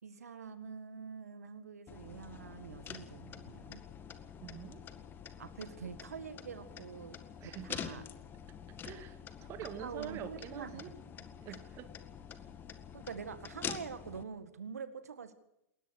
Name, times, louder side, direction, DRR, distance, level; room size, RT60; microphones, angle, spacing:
voice 1, 0.0-3.8 5.4-7.2 7.4-8.0 9.8-11.0 11.5-11.6 12.9-15.3, right 6 dB, 80° right, 11 dB, 1.9 m, -45 dB
sound 1, 1.9-14.2, left 8 dB, 25° left, 1.8 m, -47 dB
voice 2, 4.4-4.8 7.4-8.0 8.8-10.9 11.4-12.0, right 9 dB, 35° right, 9 dB, 2.1 m, -46 dB
20.5 x 19.5 x 6.5 m, 0.82 s
hypercardioid pair, 105°, 8 cm